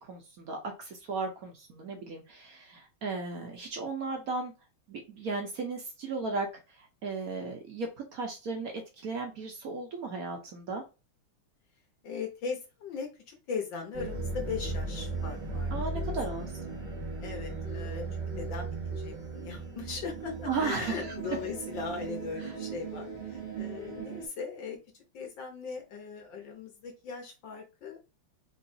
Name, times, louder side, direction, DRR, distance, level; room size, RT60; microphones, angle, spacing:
voice 1, 0.0-4.5 4.9-6.5 6.8-10.8 15.7-16.5 20.5-21.1, right 4 dB, 60° right, 2 dB, 1.0 m, -35 dB
voice 2, 12.0-15.7 17.2-18.1 18.4-28.0, left 5 dB, 65° left, 2 dB, 1.6 m, -39 dB
sound 1, 13.9-24.3, right 3 dB, 35° right, 0.8 m, -37 dB
3.9 x 3.1 x 2.6 m, 0.28 s
omnidirectional pair, 2.3 m